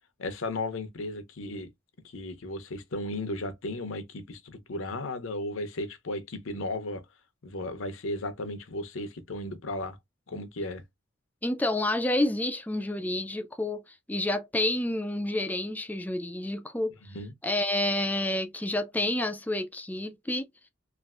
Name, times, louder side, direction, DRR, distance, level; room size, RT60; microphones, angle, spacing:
voice 1, 0.2-1.7 2.0-7.0 7.4-10.0 10.3-10.8 17.1-17.3, left 2 dB, 70° left, 0.7 m, -35 dB
voice 2, 11.4-17.0 17.4-20.5, left 1 dB, 10° left, 0.3 m, -29 dB
3.2 x 2.5 x 2.4 m
head